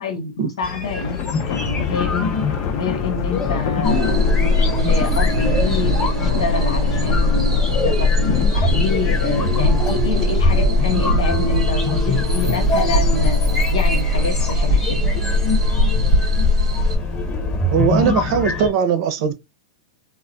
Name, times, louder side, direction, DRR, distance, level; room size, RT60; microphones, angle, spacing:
voice 1, 0.0-2.3 2.7-4.2 4.9-13.3 13.7-15.0, left 3 dB, 85° left, 0.9 m, -27 dB
sound 1, 0.6-18.7, left 3 dB, 25° left, 0.9 m, -26 dB
Thunder, 0.8-17.4, left 7 dB, 45° left, 0.5 m, -27 dB
sound 2, 3.8-17.0, left 1 dB, 85° right, 0.9 m, -19 dB
voice 2, 17.7-19.3, right 7 dB, 55° right, 0.6 m, -19 dB
2.3 x 2.1 x 3.8 m
hypercardioid pair, 140°, 3 cm